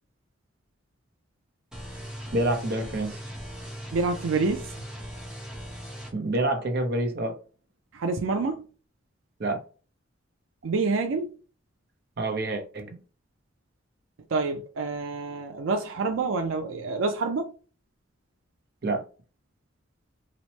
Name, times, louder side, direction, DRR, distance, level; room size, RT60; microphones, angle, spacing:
sound 1, 1.7-6.1, equal, 5° right, 0.8 m, -39 dB
voice 1, 2.3-3.2 6.1-7.4 9.4-9.6 12.2-13.0 18.8-19.0, right 2 dB, 55° right, 0.7 m, -27 dB
voice 2, 3.9-4.7 7.9-8.7 10.6-11.4 14.3-17.5, right 3 dB, 90° right, 0.4 m, -27 dB
3.0 x 2.1 x 2.9 m
head